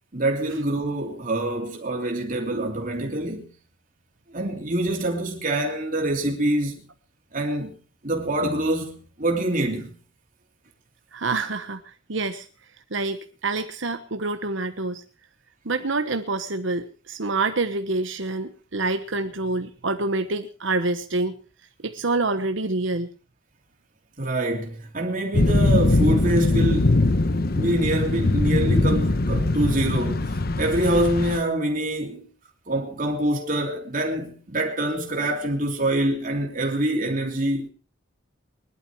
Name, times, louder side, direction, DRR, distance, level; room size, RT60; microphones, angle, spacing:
voice 1, 0.1-3.5 4.3-6.8 7.3-7.7 8.0-9.9 24.2-27.2 27.6-32.3 32.7-37.7, right 1 dB, 40° right, 3.0 m, -25 dB
voice 2, 11.1-12.5 12.9-15.0 15.6-21.4 21.8-23.1, right 3 dB, 70° right, 1.2 m, -27 dB
sound 1, 25.3-31.4, left 2 dB, 50° left, 1.0 m, -21 dB
20.5 x 12.0 x 4.7 m
head